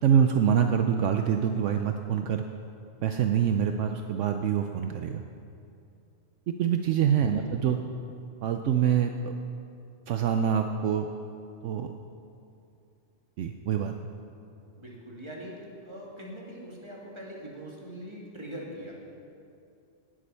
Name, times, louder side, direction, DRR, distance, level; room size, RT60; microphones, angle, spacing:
voice 1, 0.0-2.4 3.0-5.2 6.6-7.8 8.4-9.3 10.1-11.1 11.6-11.9 13.4-13.9, right 8 dB, 75° right, 6 dB, 0.9 m, -25 dB
voice 2, 14.8-18.9, equal, 20° right, -4 dB, 2.3 m, -42 dB
18.5 x 7.7 x 5.5 m, 2.5 s
omnidirectional pair, 1.3 m